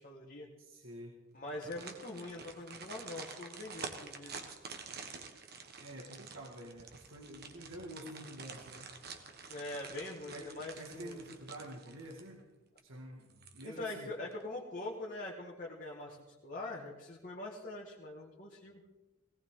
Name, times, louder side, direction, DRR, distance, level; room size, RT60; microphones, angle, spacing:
voice 1, 0.0-0.5 1.3-4.4 9.5-11.2 13.6-16.2 16.4-18.8, left 2 dB, 40° left, -3 dB, 1.7 m, -43 dB
voice 2, 0.6-1.2 5.8-8.9 10.3-12.4 12.8-14.1, right 1 dB, 75° right, -1 dB, 2.0 m, -48 dB
sound 1, 1.5-12.4 12.8-12.9 13.3-14.0 14.3-14.4, right 5 dB, 50° right, 1.4 m, -49 dB
18.5 x 18.0 x 3.8 m, 1.1 s
head